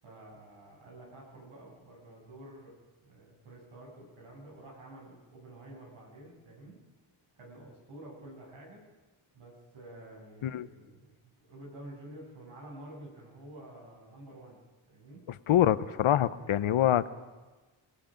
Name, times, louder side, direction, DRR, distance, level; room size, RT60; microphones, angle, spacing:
voice 1, 0.0-2.8 3.0-6.8 7.3-8.9 9.3-14.6 14.9-15.3, right 1 dB, 80° right, -2 dB, 7.8 m, -50 dB
voice 2, 15.5-17.1, left 11 dB, 90° left, 14 dB, 0.9 m, -25 dB
29.0 x 18.0 x 5.2 m, 1.2 s
wide cardioid pair, 145°, 48 cm